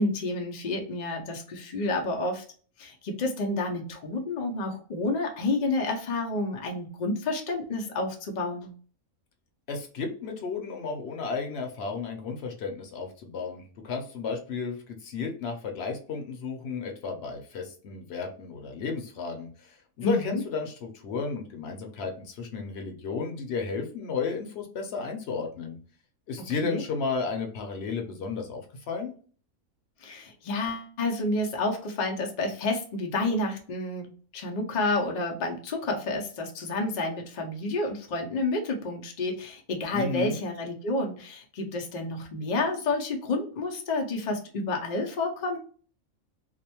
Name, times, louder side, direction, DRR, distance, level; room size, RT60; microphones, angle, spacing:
voice 1, 0.0-2.4 2.8-8.7 20.0-20.4 26.4-26.8 30.0-45.6, left 2 dB, 90° left, 2 dB, 0.3 m, -30 dB
voice 2, 9.7-25.8 26.3-28.6 28.9-29.1 39.9-40.4, left 5 dB, 60° left, 3 dB, 0.7 m, -33 dB
2.5 x 2.1 x 2.8 m, 0.42 s
omnidirectional pair, 1.5 m